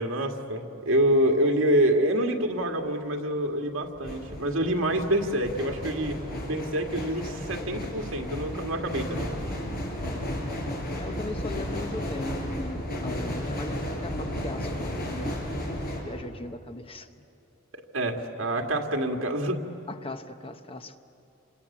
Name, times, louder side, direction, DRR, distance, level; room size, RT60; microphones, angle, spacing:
voice 1, 0.0-6.2 6.4-9.3 17.7-19.6, right 1 dB, 70° right, 3 dB, 2.0 m, -26 dB
sound 1, 2.6-2.8 3.8-16.0, equal, 50° left, 5.1 m, -33 dB
voice 2, 11.0-15.4 15.9-17.1 19.9-21.0, left 2 dB, 25° left, 8 dB, 0.9 m, -39 dB
28.0 x 26.0 x 7.3 m, 2.8 s
head